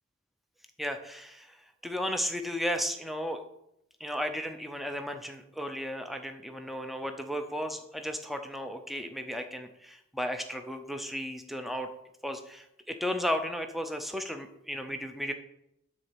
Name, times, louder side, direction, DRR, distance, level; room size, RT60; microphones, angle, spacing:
voice 1, 0.8-1.6 1.8-3.4 4.0-11.9 12.2-15.3, equal, ahead, 6 dB, 0.6 m, -34 dB
9.8 x 4.1 x 7.4 m, 0.81 s
head